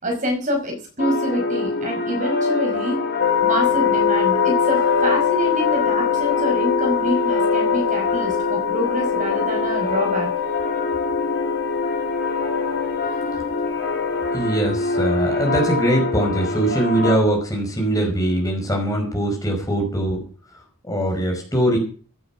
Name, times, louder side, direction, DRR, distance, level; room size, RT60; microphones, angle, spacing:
voice 1, 0.0-3.0 3.4-10.3, equal, 35° right, 2 dB, 5.2 m, -26 dB
sound 1, 1.0-17.2, left 2 dB, 45° left, 2.9 m, -25 dB
sound 2, 3.2-14.4, left 11 dB, 80° left, 1.5 m, -24 dB
voice 2, 14.3-20.2 20.8-21.8, right 1 dB, 15° left, 1 dB, 5.1 m, -21 dB
16.0 x 9.4 x 6.0 m, 0.41 s
head